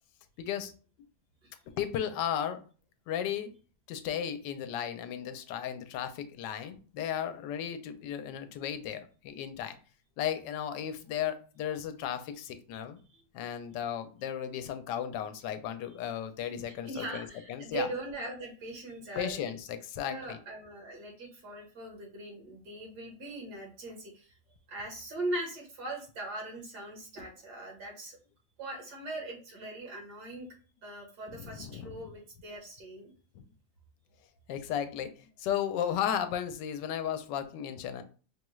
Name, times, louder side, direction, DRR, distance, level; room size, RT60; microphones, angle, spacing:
voice 1, 0.4-0.7 1.8-2.6 3.1-3.5 3.9-9.8 10.2-13.0 13.3-17.9 19.1-20.4 31.3-32.0 33.3-33.4 34.5-38.0, left 9 dB, 85° left, 9 dB, 1.2 m, -35 dB
voice 2, 16.9-19.5 20.0-24.4 24.7-28.2 28.6-30.5 30.8-33.1, right 2 dB, 70° right, 0 dB, 1.9 m, -40 dB
5.2 x 2.3 x 3.0 m, 0.37 s
omnidirectional pair, 1.8 m